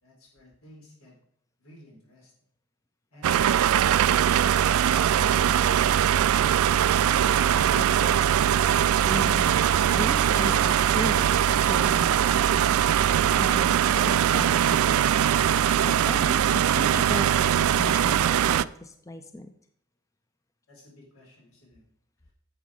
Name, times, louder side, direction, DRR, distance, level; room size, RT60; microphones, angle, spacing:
voice 1, 0.0-1.1 1.6-2.3 3.1-4.5 20.7-21.8, left 1 dB, 85° left, -2 dB, 4.3 m, -50 dB
sound 1, 3.2-18.6, right 9 dB, 85° right, 0.3 m, -21 dB
voice 2, 7.7-8.4 9.0-12.6 13.3-15.0 15.5-17.4 17.7-19.5, left 1 dB, 15° left, 8 dB, 0.5 m, -37 dB
9.0 x 7.3 x 4.9 m, 0.68 s
head